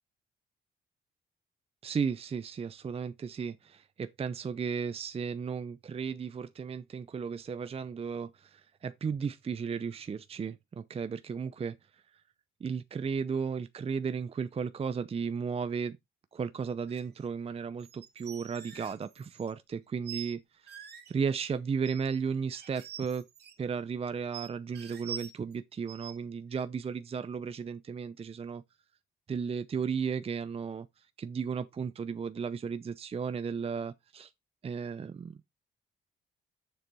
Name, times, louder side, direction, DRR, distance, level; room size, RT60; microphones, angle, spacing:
voice 1, 1.8-11.8 12.6-16.0 16.3-20.8 21.1-23.3 23.6-28.6 29.3-34.3 34.6-35.4, right 6 dB, 30° right, 0.6 m, -35 dB
sound 1, 16.9-17.1 17.8-19.5 20.0-20.3 20.7-21.1 21.8-22.2 22.5-23.6 24.3-25.5 25.9-26.1 26.5-26.6, right 8 dB, 55° right, 2.0 m, -45 dB
7.7 x 6.9 x 4.1 m
cardioid pair, 90°, 20 cm